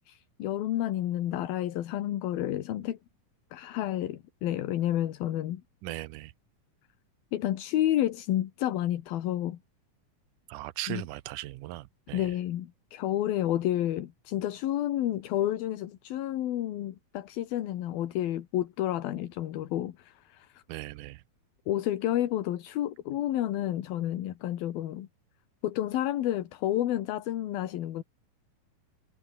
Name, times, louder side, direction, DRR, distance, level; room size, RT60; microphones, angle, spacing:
voice 1, 0.1-3.0 3.5-5.6 7.3-9.6 10.9-11.0 12.1-20.6 21.7-25.1 25.6-28.0, left 13 dB, 75° left, 3.3 m, -30 dB
voice 2, 5.8-6.3 10.5-12.3 20.7-21.2, right 17 dB, 80° right, 1.9 m, -38 dB
omnidirectional pair, 4.4 m